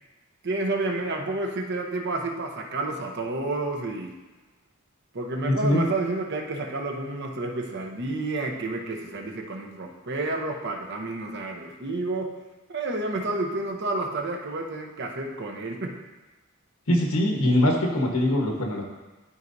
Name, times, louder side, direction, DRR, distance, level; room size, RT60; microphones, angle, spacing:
voice 1, 0.4-4.2 5.1-12.4 12.7-16.0, right 2 dB, 55° right, 2 dB, 0.9 m, -30 dB
voice 2, 5.5-5.8 16.9-18.8, left 1 dB, 90° left, 0 dB, 1.3 m, -22 dB
12.5 x 4.6 x 2.7 m, 1.2 s
head